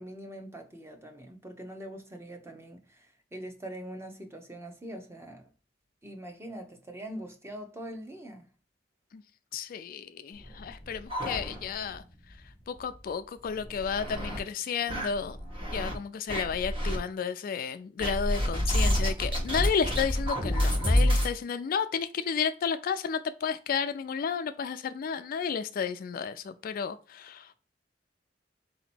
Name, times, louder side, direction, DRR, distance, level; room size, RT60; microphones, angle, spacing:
voice 1, 0.0-5.5 6.0-8.5, right 1 dB, 15° right, 0.8 m, -43 dB
voice 2, 9.5-12.0 12.7-15.4 15.7-27.5, left 6 dB, 50° left, 0.3 m, -32 dB
sound 1, 10.4-12.0 12.3-12.4 12.8-12.9 13.5-14.4 14.9-15.9 16.3-17.0 18.0-21.3, equal, 30° right, 1.2 m, -28 dB
4.2 x 2.9 x 4.2 m
head